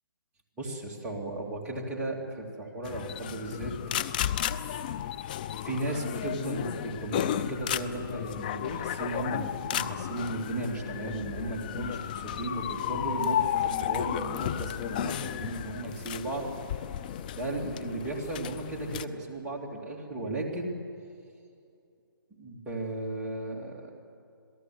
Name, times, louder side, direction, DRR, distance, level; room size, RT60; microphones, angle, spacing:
voice 1, 0.6-3.7 5.6-16.5 17.3-20.8 22.3-23.9, right 2 dB, 10° right, -3 dB, 2.9 m, -35 dB
sound 1, 2.9-19.0, left 10 dB, 20° left, 0.5 m, -33 dB
27.0 x 17.5 x 7.9 m, 2.5 s
hypercardioid pair, 160°, 12 cm